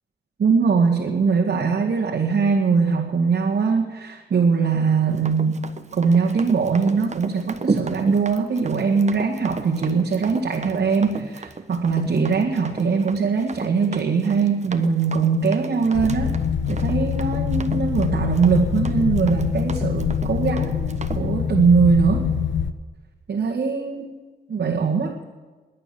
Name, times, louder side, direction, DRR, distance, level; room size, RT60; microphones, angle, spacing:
voice 1, 0.4-16.4 16.7-22.3 23.3-24.1 24.5-25.1, right 5 dB, 70° right, -3 dB, 2.1 m, -21 dB
Run, 5.1-21.2, right 4 dB, 40° right, 1.3 m, -34 dB
sound 1, 15.9-22.7, left 7 dB, 85° left, 0.9 m, -24 dB
22.0 x 8.9 x 7.1 m, 1.3 s
cardioid pair, 55°, 18 cm